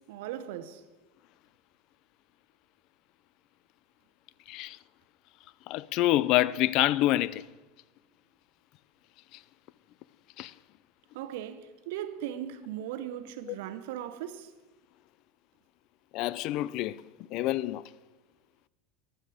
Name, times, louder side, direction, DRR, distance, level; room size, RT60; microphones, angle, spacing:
voice 1, 0.1-0.8 11.1-14.5, right 11 dB, 75° right, 1.0 m, -38 dB
voice 2, 5.7-7.4 10.4-10.5 13.5-13.6 16.1-17.0 17.3-17.9, left 15 dB, 55° left, 0.4 m, -27 dB
15.0 x 11.0 x 5.0 m
supercardioid pair, 120°, 0 cm